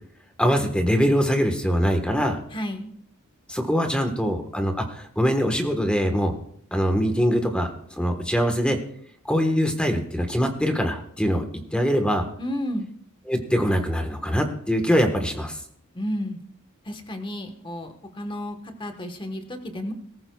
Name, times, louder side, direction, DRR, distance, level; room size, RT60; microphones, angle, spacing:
voice 1, 0.4-2.4 3.5-6.3 6.7-8.8 9.3-11.4 11.7-12.2 13.3-15.6, equal, 5° left, 5 dB, 1.4 m, -23 dB
voice 2, 2.5-2.9 12.4-12.9 15.9-16.4 16.8-19.9, equal, 25° left, 6 dB, 1.3 m, -32 dB
22.0 x 14.0 x 2.4 m, 0.64 s
head